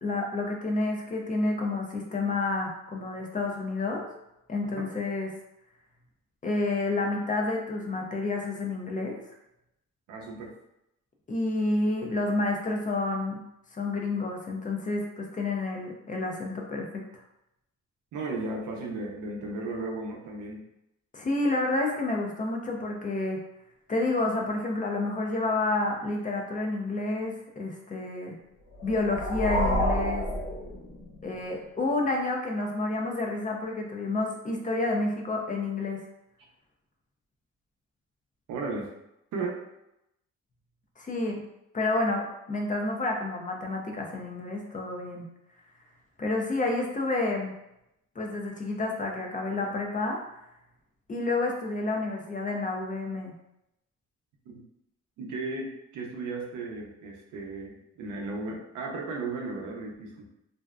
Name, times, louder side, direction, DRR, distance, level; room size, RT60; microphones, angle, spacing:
voice 1, 0.0-4.1 4.5-5.3 6.4-9.2 11.3-13.4 13.7-17.0 21.1-23.4 23.9-28.4 28.8-30.3 31.2-36.0 41.0-41.4 41.7-45.3 46.2-47.5 48.2-50.2 51.1-53.3, left 2 dB, 25° left, 1 dB, 0.5 m, -29 dB
voice 2, 10.1-10.5 18.1-20.6 38.5-38.9 39.3-39.6 54.5-54.6 55.2-60.3, right 3 dB, 85° right, -1 dB, 0.6 m, -35 dB
sound 1, 28.7-31.3, equal, 60° left, 1.2 m, -29 dB
2.6 x 2.2 x 2.3 m, 0.84 s
cardioid pair, 90°, 30 cm